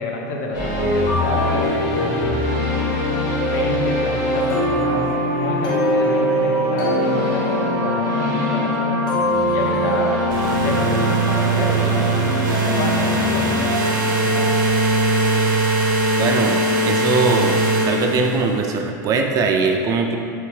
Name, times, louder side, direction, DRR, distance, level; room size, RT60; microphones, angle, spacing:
voice 1, 0.0-2.3 3.5-12.5 12.7-13.8 14.2-14.6, left 2 dB, 65° left, 0 dB, 0.7 m, -28 dB
sound 1, 0.5-15.4, equal, 45° left, 1.5 m, -22 dB
sound 2, 10.3-18.6, right 2 dB, 85° right, 0.7 m, -21 dB
voice 2, 16.2-17.6 17.8-20.2, right 4 dB, 35° right, 3 dB, 0.4 m, -21 dB
4.2 x 3.1 x 3.3 m, 2.3 s
hypercardioid pair, 110°, 10 cm